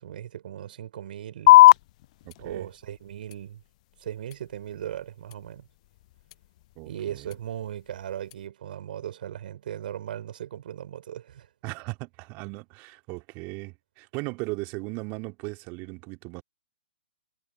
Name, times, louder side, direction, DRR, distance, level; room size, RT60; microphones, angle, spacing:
voice 1, 0.0-1.6 2.4-3.6 4.0-5.7 6.8-11.5, right 10 dB, 55° right, 5.1 m, -37 dB
sound 1, 1.5-8.5, left 17 dB, 40° left, 0.4 m, -23 dB
voice 2, 2.2-2.7 6.8-7.3 11.6-16.4, right 28 dB, 30° right, 2.4 m, -37 dB
figure-of-eight pair, 125°, 6 cm